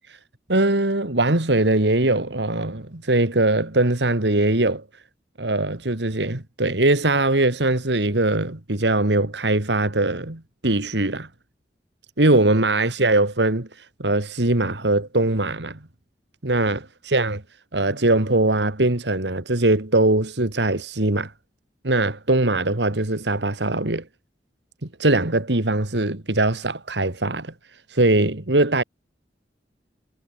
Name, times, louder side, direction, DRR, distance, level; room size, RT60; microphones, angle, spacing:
voice 1, 0.5-4.8 5.4-11.3 12.2-13.7 14.0-15.8 16.4-17.4 17.7-21.3 21.8-24.0 25.0-27.5 27.9-28.8, right 2 dB, 75° right, 2.4 m, -21 dB
head